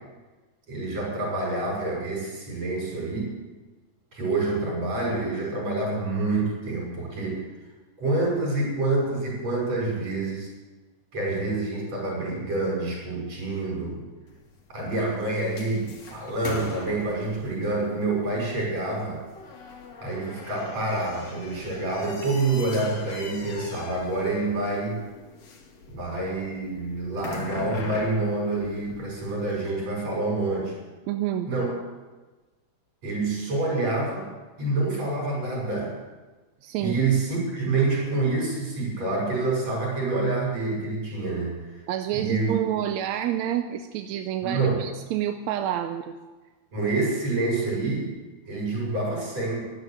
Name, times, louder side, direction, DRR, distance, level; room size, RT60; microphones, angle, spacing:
voice 1, 0.7-3.3 4.1-7.4 8.0-10.5 11.1-14.0 14.7-19.2 20.0-25.0 25.9-30.8 31.5-31.7 33.0-34.3 34.6-35.9 36.8-41.8 42.1-42.5 44.4-44.9 46.7-48.1 48.5-49.6, right 2 dB, 60° right, -3 dB, 7.3 m, -27 dB
sound 1, 14.3-29.7, left 4 dB, 60° left, 2.6 m, -42 dB
voice 2, 31.1-31.5 36.6-37.0 41.9-46.1, right 11 dB, 80° right, 7 dB, 1.9 m, -28 dB
14.0 x 12.0 x 6.6 m, 1.2 s
omnidirectional pair, 3.4 m